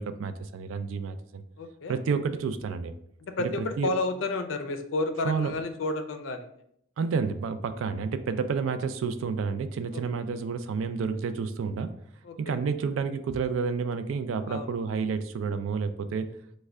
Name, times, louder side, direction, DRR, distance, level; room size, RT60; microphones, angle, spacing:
voice 1, 0.0-1.4 1.9-2.9 3.4-3.9 5.2-5.5 7.0-11.9 12.4-16.3, right 5 dB, 85° right, 11 dB, 0.3 m, -30 dB
voice 2, 1.6-2.0 3.2-6.5 9.9-10.0 12.2-12.6 14.5-14.7, left 2 dB, 75° left, 8 dB, 0.4 m, -31 dB
3.2 x 2.2 x 3.5 m, 0.71 s
head